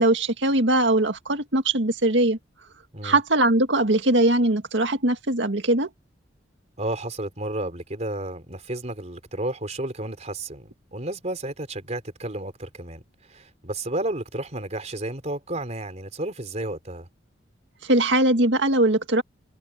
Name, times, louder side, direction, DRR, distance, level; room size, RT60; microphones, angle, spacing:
voice 1, 0.0-2.4 3.0-5.9 17.8-19.2, right 1 dB, 75° right, 2.1 m, -21 dB
voice 2, 6.8-13.0 13.3-17.1, right 1 dB, 40° right, 3.8 m, -32 dB
head